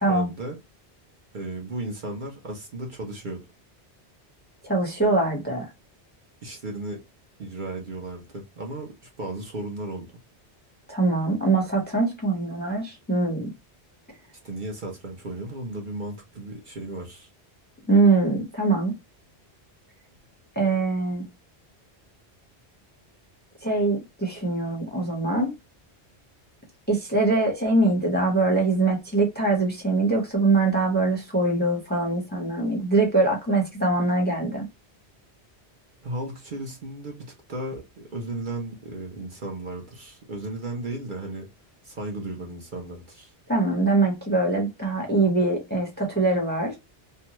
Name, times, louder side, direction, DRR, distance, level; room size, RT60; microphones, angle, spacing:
voice 1, 0.1-0.6 1.3-3.4 6.4-7.0 7.4-10.1 14.4-17.3 36.0-41.5 41.8-43.3, right 2 dB, 50° right, 0.8 m, -35 dB
voice 2, 4.6-5.7 10.9-13.5 17.9-18.9 20.6-21.2 23.6-25.5 26.9-34.7 43.5-46.8, right 3 dB, 10° left, 0.7 m, -23 dB
2.6 x 2.2 x 2.9 m
omnidirectional pair, 1.1 m